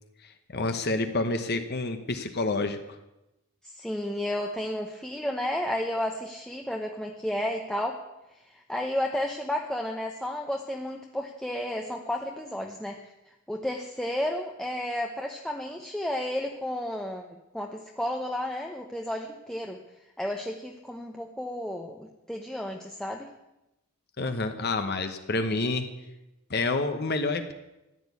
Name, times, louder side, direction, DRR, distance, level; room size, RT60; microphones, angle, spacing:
voice 1, 0.2-2.8 24.2-25.9 26.5-27.5, left 3 dB, 45° left, 7 dB, 1.1 m, -28 dB
voice 2, 3.6-8.0 8.4-13.1 13.5-19.8 20.2-23.3, left 1 dB, 5° left, 1 dB, 0.9 m, -32 dB
15.0 x 10.5 x 8.4 m, 0.94 s
head